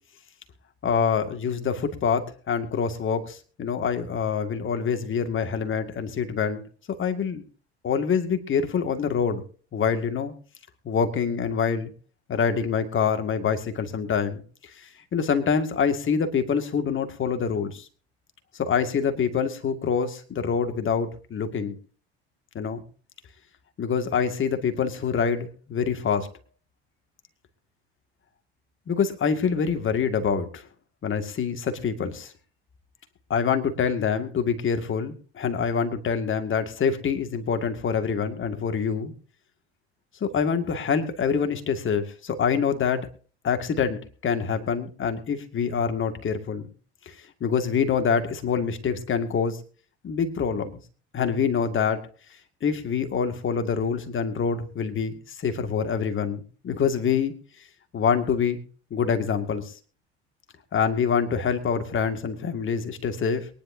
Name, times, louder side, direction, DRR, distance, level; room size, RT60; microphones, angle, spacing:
voice 1, 0.8-6.6 7.0-7.4 7.8-9.4 9.7-10.3 10.8-11.9 12.3-14.4 14.8-17.9 18.5-21.8 22.5-22.8 23.8-26.3 28.9-30.6 31.0-32.3 33.3-39.1 40.2-43.0 43.4-46.6 47.1-47.2 47.4-49.6 50.0-50.8 51.1-52.0 52.6-57.3 57.9-58.6 58.9-59.7 60.7-63.5, left 6 dB, 35° left, 7 dB, 2.3 m, -25 dB
23.0 x 10.5 x 2.8 m, 0.40 s
hypercardioid pair, 70°, 33 cm